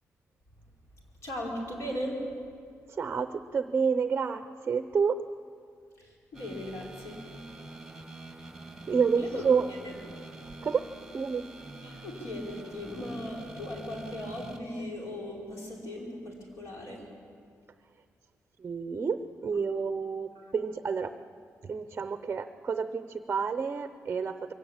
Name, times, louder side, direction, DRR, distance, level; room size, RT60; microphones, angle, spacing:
voice 1, 1.2-2.2 6.0-7.2 9.1-9.4 9.8-9.9 11.8-17.0 20.3-20.5, left 1 dB, 65° left, -2 dB, 4.6 m, -38 dB
voice 2, 2.9-5.2 8.9-9.7 10.6-10.8 11.1-11.4 18.6-21.1 21.6-24.5, right 6 dB, 30° right, 10 dB, 0.6 m, -29 dB
sound 1, 6.3-14.6, right 2 dB, 5° right, 1.5 m, -46 dB
22.5 x 16.5 x 8.8 m, 2.2 s
wide cardioid pair, 180°, 5 cm